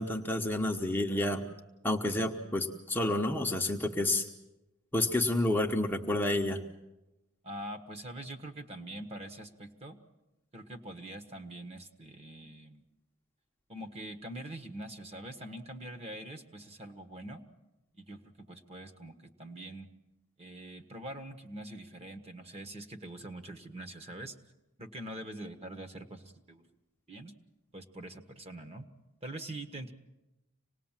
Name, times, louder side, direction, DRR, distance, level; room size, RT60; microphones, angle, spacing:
voice 1, 0.0-1.4 1.8-4.3 4.9-6.6, left 1 dB, 10° left, 1 dB, 1.0 m, -29 dB
voice 2, 7.4-10.0 10.5-12.8 13.7-17.4 17.9-19.9 20.4-24.3 24.8-26.6 27.1-27.4 27.7-28.9 29.2-29.9, right 1 dB, 30° right, 7 dB, 1.4 m, -44 dB
26.0 x 19.5 x 7.4 m, 0.98 s
head